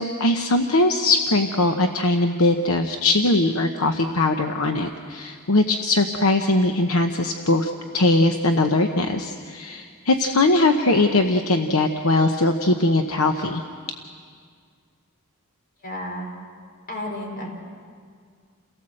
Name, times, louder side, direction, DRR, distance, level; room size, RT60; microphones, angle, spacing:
voice 1, 0.0-13.6, left 2 dB, 70° left, 5 dB, 1.0 m, -20 dB
voice 2, 15.8-16.3 16.9-17.5, left 1 dB, 40° left, 0 dB, 4.8 m, -32 dB
29.0 x 17.5 x 7.7 m, 2.1 s
head